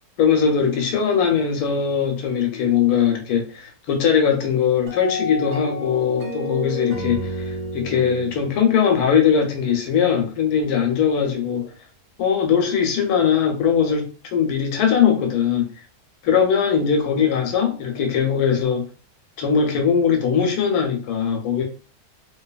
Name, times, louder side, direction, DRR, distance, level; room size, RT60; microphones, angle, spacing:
voice 1, 0.2-11.7 12.2-15.7 16.2-18.8 19.4-21.6, left 7 dB, 85° left, 1.1 m, -20 dB
sound 1, 4.9-10.0, left 1 dB, 60° right, 0.8 m, -31 dB
2.7 x 2.2 x 2.3 m
omnidirectional pair, 1.6 m